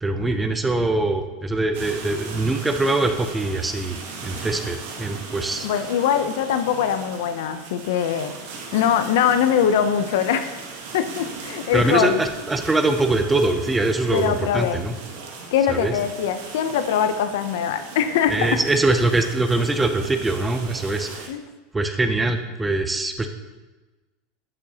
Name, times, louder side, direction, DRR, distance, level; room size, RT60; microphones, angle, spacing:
voice 1, 0.0-5.7 11.7-15.0 15.7-16.0 18.3-21.3 21.7-23.3, right 2 dB, 10° right, 7 dB, 0.4 m, -23 dB
sound 1, 1.7-21.3, right 4 dB, 75° right, 1.3 m, -38 dB
voice 2, 5.6-8.3 8.7-10.6 10.9-12.2 14.1-14.8 15.5-18.5 21.3-21.4, left 8 dB, 70° left, 10 dB, 0.5 m, -22 dB
10.5 x 5.1 x 2.8 m, 1.2 s
supercardioid pair, 165°, 0 cm